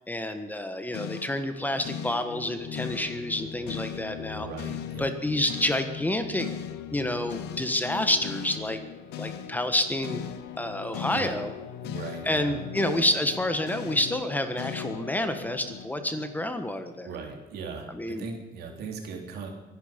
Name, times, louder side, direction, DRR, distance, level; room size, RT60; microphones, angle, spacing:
voice 1, 0.1-4.5 5.0-6.5 6.9-8.8 9.2-10.2 10.6-11.5 12.2-17.1 17.9-18.3, left 1 dB, 10° left, 8 dB, 1.4 m, -28 dB
sound 1, 0.9-17.2, left 9 dB, 80° left, 1.2 m, -39 dB
voice 2, 4.3-5.1 11.1-11.5 11.8-12.6 17.0-19.5, right 5 dB, 70° right, 2 dB, 3.5 m, -38 dB
23.0 x 11.0 x 5.3 m, 1.1 s
cardioid pair, 110°, 17 cm